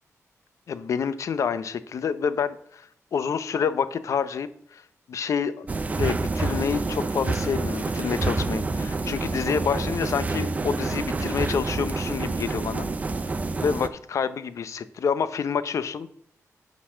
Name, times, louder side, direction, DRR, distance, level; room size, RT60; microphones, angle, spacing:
voice 1, 0.7-2.9 3.1-4.8 5.1-5.7 6.0-12.9 13.6-16.1, left 6 dB, 65° left, 13 dB, 0.6 m, -28 dB
sound 1, 5.7-13.9, right 3 dB, 25° right, 0.5 m, -28 dB
10.0 x 4.0 x 6.3 m, 0.67 s
wide cardioid pair, 150°, 6 cm